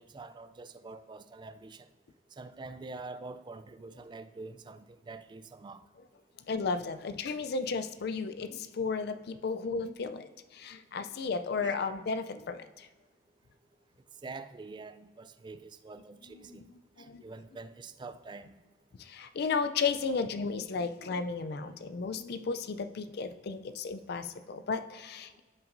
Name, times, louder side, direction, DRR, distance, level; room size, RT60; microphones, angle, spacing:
voice 1, 0.0-1.9 2.4-5.8 11.6-11.9 14.2-16.6 17.2-18.6, right 3 dB, 25° right, 0.3 m, -46 dB
voice 2, 6.5-12.9 16.3-17.2 19.0-25.4, left 4 dB, 55° left, 0.4 m, -34 dB
15.5 x 5.8 x 2.6 m
head